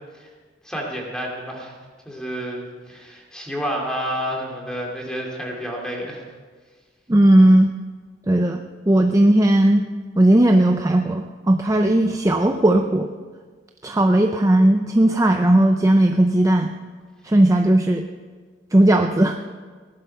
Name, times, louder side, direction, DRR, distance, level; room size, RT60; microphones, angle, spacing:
voice 1, 0.6-1.8 2.0-6.2, equal, 5° left, -1 dB, 2.7 m, -30 dB
voice 2, 7.1-7.7 8.3-8.6 8.9-9.8 10.2-13.1 13.8-16.7 17.2-18.0 18.7-19.4, right 1 dB, 20° right, 4 dB, 0.5 m, -16 dB
17.5 x 11.0 x 5.6 m, 1.5 s
head